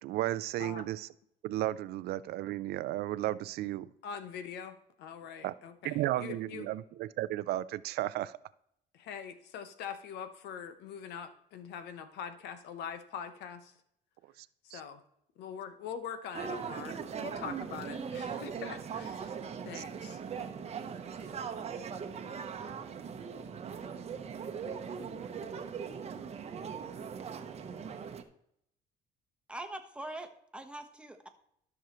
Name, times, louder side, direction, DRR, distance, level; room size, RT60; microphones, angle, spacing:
voice 1, 0.0-1.1 1.4-3.9 5.4-5.5 5.8-8.4 14.4-14.5 14.7-14.8 19.7-19.8, right 15 dB, 75° right, 17 dB, 0.4 m, -34 dB
voice 2, 4.0-6.7 8.9-13.7 14.7-15.0 15.4-19.4 19.6-20.4 21.2-21.3, left 7 dB, 80° left, 10 dB, 1.0 m, -43 dB
sound 1, 16.3-28.2, right 6 dB, 40° right, 0.9 m, -40 dB
voice 3, 29.5-31.3, right 1 dB, 5° right, 5 dB, 1.1 m, -43 dB
13.0 x 6.3 x 3.0 m, 0.73 s
cardioid pair, 110°, 17 cm